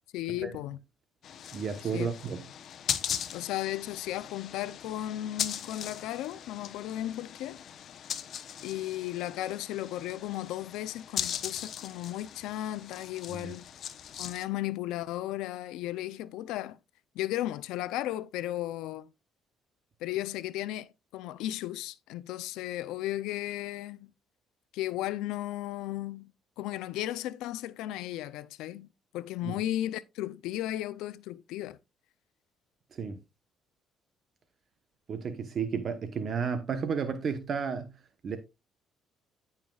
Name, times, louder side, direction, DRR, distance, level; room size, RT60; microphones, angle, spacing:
voice 1, 0.1-0.8 1.9-2.1 3.3-7.6 8.6-13.6 14.2-16.8 17.1-19.1 20.0-24.1 24.7-26.3 26.6-31.8, left 14 dB, 85° left, 0.5 m, -35 dB
sound 1, 1.2-14.4, left 9 dB, 60° left, 0.8 m, -39 dB
voice 2, 1.5-2.4 13.3-13.5 29.4-29.6 32.9-33.2 35.1-37.9 38.2-38.4, right 6 dB, 45° right, 1.0 m, -32 dB
14.0 x 5.7 x 2.4 m
cardioid pair, 100°, 0 cm